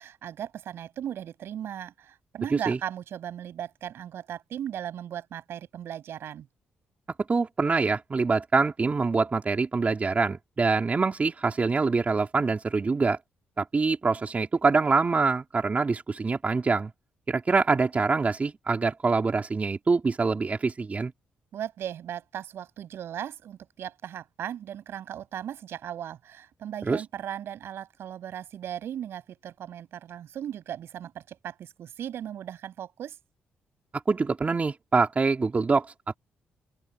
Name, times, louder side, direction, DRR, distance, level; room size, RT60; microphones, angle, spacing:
voice 1, 0.0-6.5 21.5-33.2, right 10 dB, 70° right, 7.8 m, -37 dB
voice 2, 7.3-13.2 13.6-16.9 17.3-21.1 26.9-27.0 34.1-35.9, right 4 dB, 35° right, 3.0 m, -25 dB
open air
supercardioid pair, 60°, 4 cm